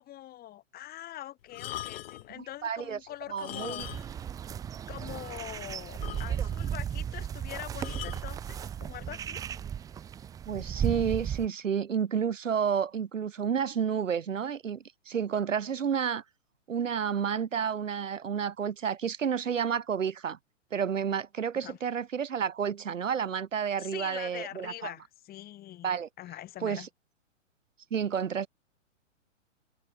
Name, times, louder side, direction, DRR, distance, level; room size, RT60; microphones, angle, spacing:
voice 1, 0.0-4.2 4.9-9.4 21.6-21.8 23.8-25.9 26.2-26.9, left 13 dB, 25° left, 7.4 m, -43 dB
sound 1, 1.5-2.3 3.3-4.3 4.5-4.7 5.2-5.3 5.5-5.6 6.0-6.7 7.8-8.3 9.1-9.4, left 14 dB, 50° left, 4.1 m, -41 dB
voice 2, 2.4-3.0 3.3-3.9 10.5-16.2 16.7-20.4 20.7-24.9 25.8-26.1 26.6-26.9 27.9-28.5, right 7 dB, 80° right, 2.2 m, -30 dB
sound 2, 3.8-11.5, right 9 dB, 10° right, 0.6 m, -35 dB
hypercardioid pair, 130°, 38 cm